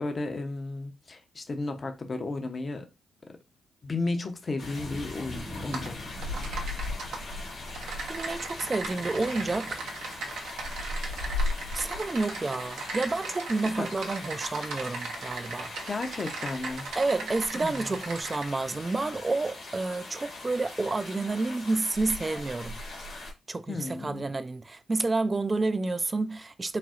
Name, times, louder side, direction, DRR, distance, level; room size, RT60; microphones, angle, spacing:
voice 1, 0.0-2.9 3.8-5.9 13.8-13.9 15.9-16.9 17.6-17.8 23.7-24.2, left 3 dB, 40° left, 0.7 m, -33 dB
sound 1, 4.6-23.3, left 2 dB, 75° left, 1.7 m, -38 dB
Typing, 5.7-5.9 6.2-7.2 7.7-18.4, right 3 dB, 80° right, 0.7 m, -38 dB
voice 2, 8.1-9.8 11.7-15.7 17.0-22.8 23.5-26.8, right 3 dB, 30° right, 0.3 m, -29 dB
4.0 x 2.0 x 2.4 m
supercardioid pair, 50°, 0 cm